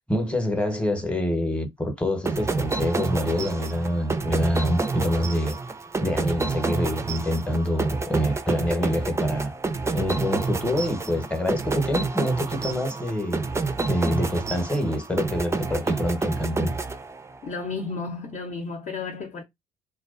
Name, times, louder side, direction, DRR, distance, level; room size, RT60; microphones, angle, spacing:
voice 1, 0.1-5.6 6.0-9.5 9.9-13.4 13.9-16.7, left 1 dB, 5° left, 0.9 m, -26 dB
sound 1, 2.3-17.6, right 3 dB, 15° right, 0.4 m, -29 dB
voice 2, 17.4-19.4, left 4 dB, 40° left, 0.7 m, -32 dB
2.3 x 2.2 x 2.4 m
supercardioid pair, 60°, 20 cm